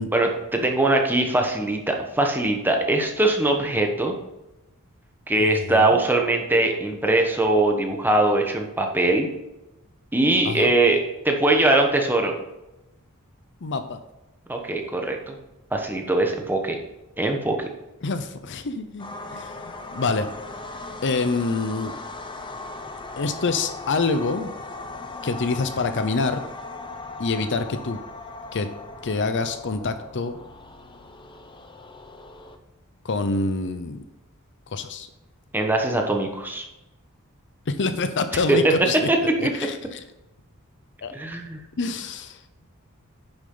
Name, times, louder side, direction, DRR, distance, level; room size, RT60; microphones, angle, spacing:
voice 1, 0.1-4.2 5.3-9.3 10.1-12.3 14.5-15.4 15.7-16.8 17.2-17.7 35.5-36.6 38.5-38.7 39.1-39.2 39.4-39.5 41.1-41.6, right 2 dB, 10° right, 2 dB, 1.2 m, -21 dB
voice 2, 5.4-6.0 10.4-10.7 13.6-14.0 18.0-20.3 21.0-21.9 23.2-24.5 25.2-26.4 27.2-28.0 28.5-28.7 29.0-30.4 33.0-34.0 34.7-35.1 37.7-39.1 39.4-40.0 41.0-41.1 41.8-42.4, left 3 dB, 55° left, 10 dB, 0.6 m, -26 dB
sound 1, 19.0-32.6, left 3 dB, 20° left, 0.8 m, -38 dB
10.0 x 7.1 x 3.9 m, 0.95 s
head